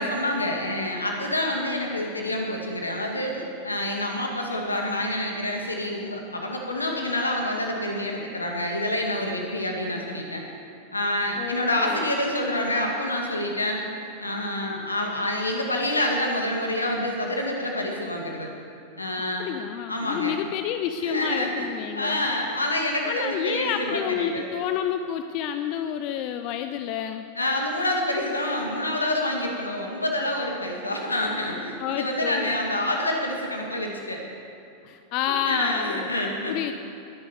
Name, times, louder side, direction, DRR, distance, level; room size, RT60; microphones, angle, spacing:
voice 1, 0.0-10.4 10.9-13.8 14.2-18.5 19.0-19.5 19.9-20.4 21.0-21.7 22.0-24.5 27.4-34.2 35.4-36.6, left 1 dB, 80° left, 1 dB, 2.1 m, -27 dB
voice 2, 11.4-12.0 19.4-22.3 23.0-27.3 31.8-32.5 34.8-36.1 36.5-36.7, left 9 dB, 40° left, 8 dB, 0.6 m, -29 dB
21.0 x 10.5 x 4.7 m, 2.8 s
figure-of-eight pair, 90°, 0 cm